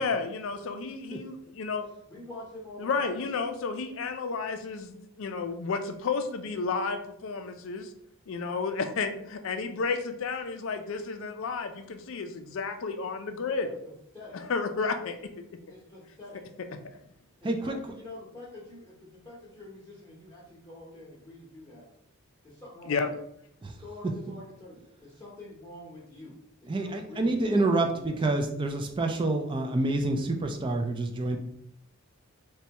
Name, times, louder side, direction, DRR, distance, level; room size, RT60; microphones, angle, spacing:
voice 1, 0.0-1.9 2.8-7.9 8.3-13.7 14.3-15.2 22.9-23.1, left 4 dB, 60° left, 8 dB, 0.4 m, -32 dB
voice 2, 2.1-3.2 13.6-13.7 14.1-14.4 15.7-16.4 17.4-21.9 22.4-23.2 23.8-28.2, left 2 dB, 20° left, -7 dB, 0.7 m, -46 dB
voice 3, 17.4-17.8 23.6-23.8 26.7-31.4, right 2 dB, 20° right, 5 dB, 0.3 m, -27 dB
4.2 x 2.2 x 2.8 m, 0.75 s
head